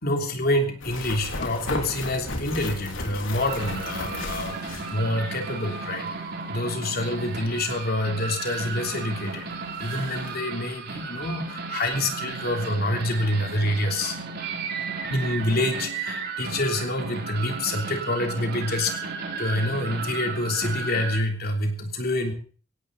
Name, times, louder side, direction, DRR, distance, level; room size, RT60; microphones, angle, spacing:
voice 1, 0.0-6.1 6.5-14.2 15.1-18.9 19.4-22.3, left 1 dB, 50° left, 3 dB, 3.3 m, -27 dB
sound 1, 0.8-5.5 5.7-5.8 8.8-8.9 9.3-9.4 9.7-10.3, left 2 dB, 80° left, 3.7 m, -34 dB
sound 2, 3.4-21.2, right 4 dB, 55° right, 3.3 m, -34 dB
17.5 x 16.5 x 4.0 m, 0.42 s
head